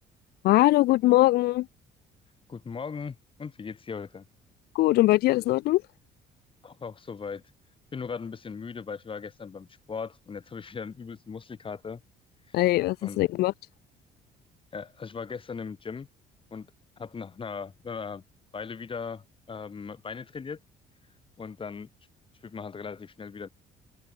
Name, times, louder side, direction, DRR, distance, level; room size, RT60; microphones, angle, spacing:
voice 1, 0.4-1.7 4.7-5.8 12.5-13.5, left 17 dB, 70° left, 0.4 m, -21 dB
voice 2, 2.5-4.3 6.6-7.4 7.9-12.0 12.5-12.6 13.0-13.2 14.7-16.1 16.5-16.7 17.0-18.2 18.5-20.6 21.4-21.9 22.4-23.5, left 5 dB, 30° left, 7.3 m, -38 dB
open air
cardioid pair, 110°, 17 cm